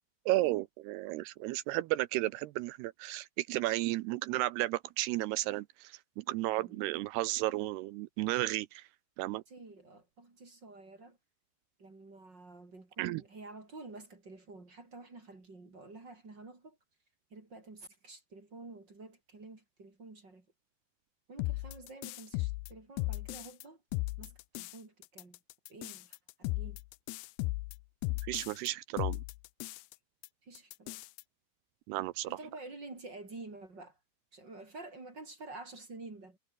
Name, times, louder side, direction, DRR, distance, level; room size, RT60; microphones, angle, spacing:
voice 1, 0.3-8.9 9.2-9.4 13.0-13.2 28.2-29.2 31.9-32.4, right 17 dB, 85° right, 2.5 m, -33 dB
voice 2, 6.5-6.8 9.2-11.2 11.8-16.8 17.3-20.5 21.3-23.8 24.2-25.4 25.7-26.8 30.4-31.0 32.3-34.0 34.3-36.4, right 3 dB, 25° right, 4.1 m, -50 dB
sound 1, 21.4-23.6 23.9-24.8 25.0-28.7 29.0-29.9 30.2-30.3 30.5-31.2, left 22 dB, 85° left, 2.2 m, -36 dB
omnidirectional pair, 5.1 m